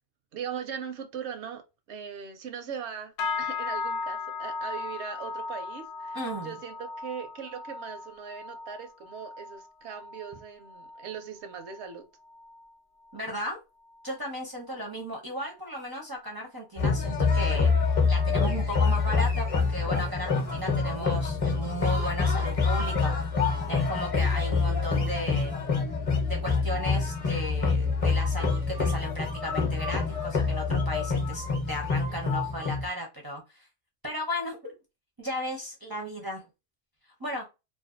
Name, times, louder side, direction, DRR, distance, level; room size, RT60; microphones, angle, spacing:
voice 1, 0.3-1.6 1.9-3.1 3.4-12.0, right 7 dB, 80° right, 0.9 m, -39 dB
sound 1, 3.2-12.7 13.0-13.5 13.9-14.2 14.8-14.9, left 4 dB, 75° left, 0.8 m, -37 dB
voice 2, 6.1-6.5 13.1-13.6 14.0-17.7 18.1-23.1 23.7-25.5 26.3-33.7 34.0-34.7 35.2-36.4 37.2-37.4, equal, 30° right, 0.4 m, -35 dB
sound 2, 16.8-32.9, left 4 dB, 35° left, 0.7 m, -26 dB
2.5 x 2.2 x 2.4 m
omnidirectional pair, 1.2 m